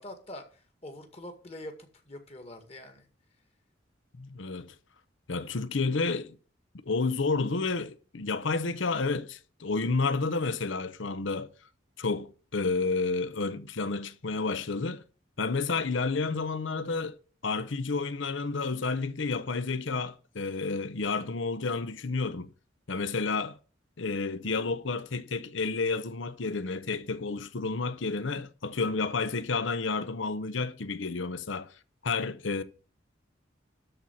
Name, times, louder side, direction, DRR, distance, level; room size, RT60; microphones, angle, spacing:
voice 1, 0.0-3.1, left 1 dB, 30° left, 2.0 m, -44 dB
voice 2, 4.2-4.7 5.3-6.4 6.8-11.5 12.0-15.0 15.4-17.2 17.4-22.5 22.9-23.6 24.0-31.7 32.0-32.6, left 4 dB, 70° left, 0.8 m, -30 dB
12.5 x 4.3 x 7.5 m
head